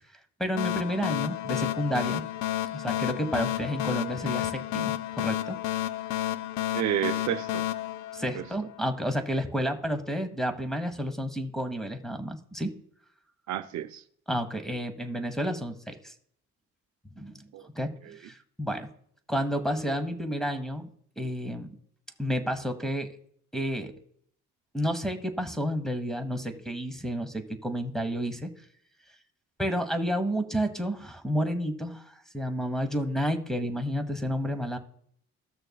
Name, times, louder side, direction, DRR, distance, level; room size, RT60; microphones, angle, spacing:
voice 1, 0.4-2.2 2.7-5.6 8.1-12.7 14.3-16.1 17.2-17.4 17.7-18.9 19.3-20.9 21.2-21.8 22.2-23.1 23.5-23.9 24.7-28.5 29.6-32.0 32.3-34.8, equal, ahead, 1.1 m, -30 dB
sound 1, 0.6-8.9, left 14 dB, 70° left, 0.5 m, -31 dB
voice 2, 6.7-7.7 8.3-8.5 13.5-14.0 17.5-17.7 18.0-18.2, right 11 dB, 70° right, 0.6 m, -30 dB
16.0 x 6.4 x 2.3 m
cardioid pair, 90°, 30 cm